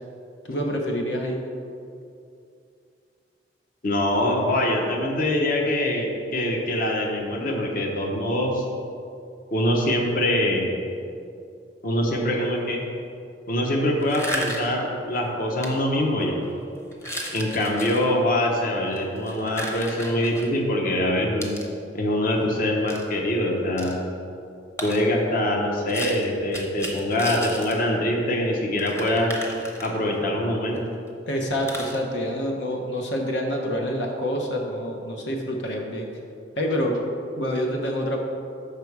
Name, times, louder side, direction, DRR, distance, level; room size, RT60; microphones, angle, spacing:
voice 1, 0.4-1.4 31.3-36.1 36.6-37.0 37.4-38.2, equal, 85° left, 1 dB, 0.8 m, -27 dB
voice 2, 3.8-8.6 9.5-10.7 11.8-12.8 13.5-16.4 17.3-21.6 21.9-24.0 24.8-29.3 29.8-30.8, left 1 dB, 50° left, 1 dB, 0.9 m, -24 dB
sound 1, 14.0-14.8 15.6-15.7 16.2-16.4 16.9-18.0 18.9-20.5 21.4-21.7 22.9-23.0 23.8-24.0 24.8-25.1 25.9-27.8 28.1-28.2 28.4-28.5 28.8-30.2 30.7-30.8 31.1-31.2 31.6-32.0, equal, 15° left, 0.8 m, -34 dB
6.7 x 5.7 x 4.7 m, 2.5 s
head